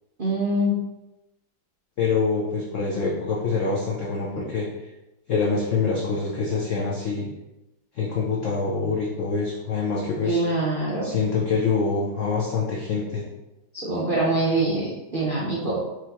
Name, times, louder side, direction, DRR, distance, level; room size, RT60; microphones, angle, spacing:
voice 1, 0.2-0.8 10.3-11.1 13.7-15.8, right 1 dB, 85° right, -7 dB, 0.4 m, -24 dB
voice 2, 2.0-4.7 5.3-7.3 7.9-10.4 11.0-13.2, left 4 dB, 90° left, -4 dB, 0.6 m, -25 dB
4.8 x 3.0 x 2.9 m, 0.99 s
omnidirectional pair, 2.2 m